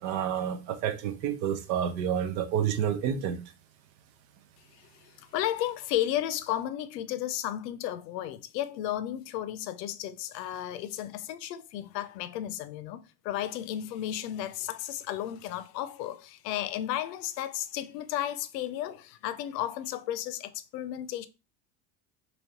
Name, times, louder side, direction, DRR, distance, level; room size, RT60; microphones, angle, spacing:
voice 1, 0.0-3.4, right 9 dB, 85° right, 0.6 m, -29 dB
voice 2, 4.7-21.3, left 12 dB, 75° left, 0.6 m, -33 dB
3.2 x 2.8 x 2.7 m
hypercardioid pair, 75°, 49 cm